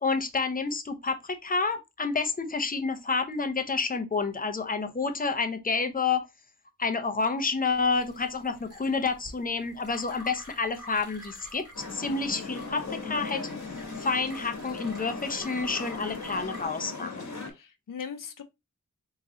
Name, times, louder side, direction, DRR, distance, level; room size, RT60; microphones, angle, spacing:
voice 1, 0.0-6.3 6.8-11.7 11.9-13.5 14.0-17.4, left 4 dB, 25° left, 0.7 m, -29 dB
sound 1, 7.7-16.7, left 1 dB, 50° right, 2.2 m, -49 dB
sound 2, 11.7-17.5, left 3 dB, 65° left, 1.2 m, -38 dB
voice 2, 12.0-12.5 17.5-18.4, left 7 dB, 85° left, 0.6 m, -41 dB
3.7 x 3.0 x 3.6 m
wide cardioid pair, 80°, 32 cm